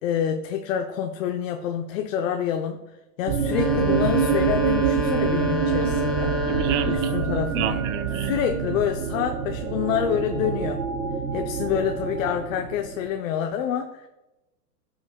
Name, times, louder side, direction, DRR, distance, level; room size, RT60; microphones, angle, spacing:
voice 1, 0.0-2.8 3.2-6.3 6.9-7.8 8.2-10.8 11.3-14.1, left 9 dB, 55° left, 5 dB, 0.9 m, -27 dB
sound 1, 3.3-13.1, right 7 dB, 75° right, 1.2 m, -26 dB
sound 2, 3.4-7.4, left 1 dB, ahead, 1.5 m, -28 dB
voice 2, 6.5-8.4, right 11 dB, 25° right, 11 dB, 0.5 m, -30 dB
15.0 x 6.3 x 2.3 m, 1.0 s
hypercardioid pair, 115°, 49 cm